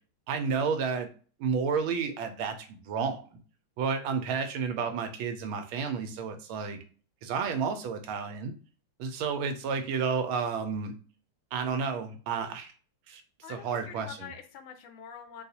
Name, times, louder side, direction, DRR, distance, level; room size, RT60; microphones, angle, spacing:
voice 1, 0.3-1.1 1.4-3.2 3.8-6.8 7.2-8.5 9.0-10.9 11.5-12.7 13.1-13.2 13.5-14.3, right 5 dB, 85° right, 7 dB, 1.4 m, -31 dB
voice 2, 13.4-15.4, left 8 dB, 80° left, 7 dB, 1.5 m, -45 dB
4.0 x 2.3 x 2.7 m, 0.39 s
omnidirectional pair, 2.2 m